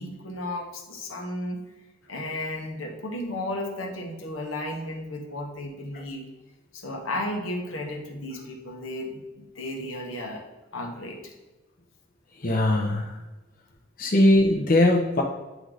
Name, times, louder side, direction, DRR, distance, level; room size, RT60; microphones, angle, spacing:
voice 1, 0.0-1.6 2.1-6.2 6.7-10.4 10.7-11.3, left 1 dB, 80° left, 1 dB, 1.2 m, -34 dB
voice 2, 12.4-13.1 14.0-15.2, left 1 dB, 40° left, -1 dB, 0.7 m, -20 dB
9.2 x 3.1 x 4.0 m, 1.1 s
head